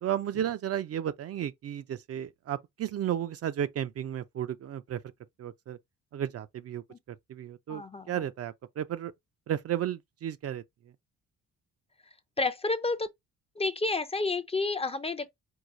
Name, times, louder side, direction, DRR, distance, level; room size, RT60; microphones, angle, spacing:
voice 1, 0.0-5.0 5.4-5.8 6.1-9.1 9.5-10.6, right 10 dB, 50° right, 0.4 m, -33 dB
voice 2, 7.7-8.1 12.4-13.1 13.6-15.3, left 3 dB, 20° left, 0.5 m, -30 dB
4.7 x 2.3 x 3.8 m
cardioid pair, 105°, 33 cm